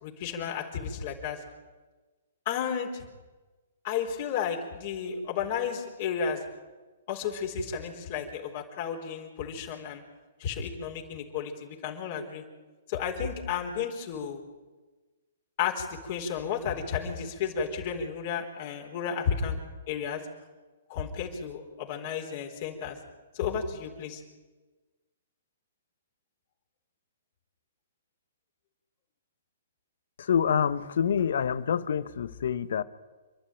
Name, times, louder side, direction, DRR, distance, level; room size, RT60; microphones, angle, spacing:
voice 1, 0.0-1.4 2.5-3.0 3.8-6.4 7.1-10.0 10.4-12.4 12.9-14.4 15.6-19.6 19.9-20.2 20.9-23.0 23.3-24.2, left 7 dB, 45° left, 0 dB, 4.0 m, -32 dB
voice 2, 30.2-32.8, left 7 dB, 65° left, 16 dB, 1.0 m, -27 dB
28.5 x 11.5 x 9.1 m, 1.2 s
hypercardioid pair, 130°, 0 cm